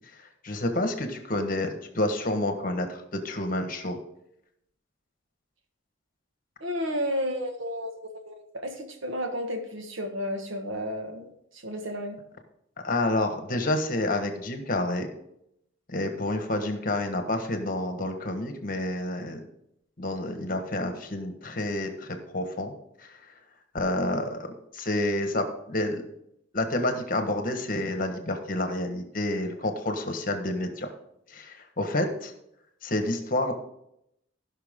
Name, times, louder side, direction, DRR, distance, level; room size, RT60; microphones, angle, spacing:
voice 1, 0.4-4.0 12.8-15.1 15.9-19.4 20.0-22.1 22.3-22.7 23.0-23.1 23.7-26.0 26.5-30.9 31.3-32.3 32.8-33.5, left 1 dB, 45° left, 6 dB, 1.4 m, -29 dB
voice 2, 6.6-12.2, equal, 80° right, 5 dB, 1.6 m, -32 dB
16.0 x 5.9 x 3.7 m, 0.77 s
head